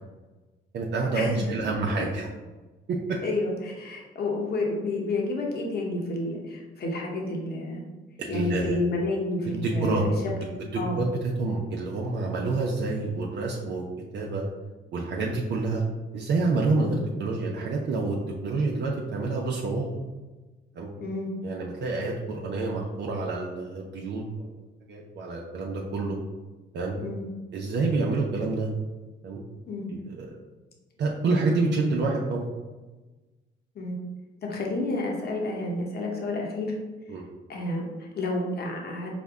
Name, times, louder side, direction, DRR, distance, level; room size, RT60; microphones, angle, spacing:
voice 1, 0.7-2.3 8.2-8.8 9.4-10.0 10.6-13.8 14.1-14.4 14.9-15.8 16.1-18.2 18.4-19.9 20.8-20.9 21.4-24.2 24.9-26.2 26.7-27.0 27.5-28.7 29.2-29.4 29.9-30.3 31.0-32.5 37.1-37.2, right 3 dB, 65° right, -2 dB, 0.6 m, -28 dB
voice 2, 3.2-7.8 8.3-11.0 16.9-17.0 21.0-21.4 27.0-27.3 29.7-29.9 33.7-34.0 34.4-36.7 37.5-39.1, left 2 dB, 55° left, -1 dB, 0.9 m, -30 dB
5.1 x 2.2 x 3.5 m, 1.2 s
cardioid pair, 90°, 20 cm